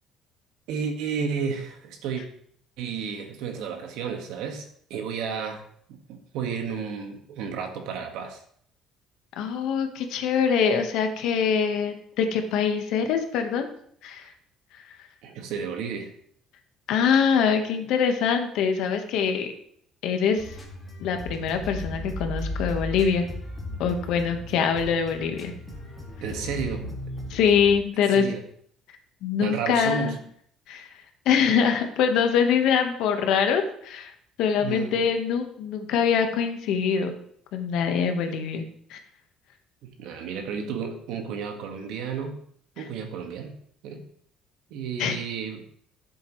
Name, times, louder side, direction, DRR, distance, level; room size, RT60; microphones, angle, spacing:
voice 1, 0.7-2.2 2.8-5.6 5.9-8.4 15.2-16.1 26.2-26.8 28.1-28.4 29.4-30.2 34.6-35.0 39.8-42.4 42.8-43.6 43.8-44.1 44.7-45.6, right 6 dB, 70° right, 4 dB, 1.6 m, -32 dB
voice 2, 9.4-13.7 14.0-14.3 16.9-19.5 20.0-20.5 21.0-23.2 23.8-25.5 27.3-28.2 29.2-30.1 30.7-30.9 31.2-34.1 34.4-37.2 37.5-38.6 38.9-39.0 42.8-42.9 45.0-45.2, left 7 dB, 65° left, 6 dB, 1.2 m, -24 dB
sound 1, 20.4-27.7, left 1 dB, 10° left, 2.1 m, -36 dB
13.0 x 7.4 x 3.1 m, 0.65 s
cardioid pair, 170°, 0 cm